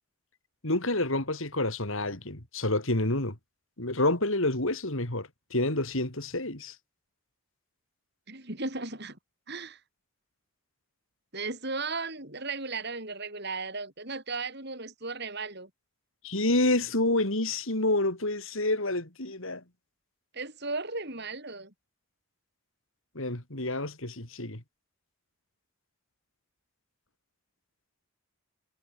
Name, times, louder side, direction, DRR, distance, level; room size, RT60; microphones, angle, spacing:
voice 1, 0.6-3.4 3.8-6.7 16.2-19.6 23.2-24.6, left 2 dB, 65° left, 3.8 m, -28 dB
voice 2, 8.3-9.2 9.5-9.8 11.3-15.7 20.3-21.7, right 3 dB, 50° right, 7.0 m, -36 dB
head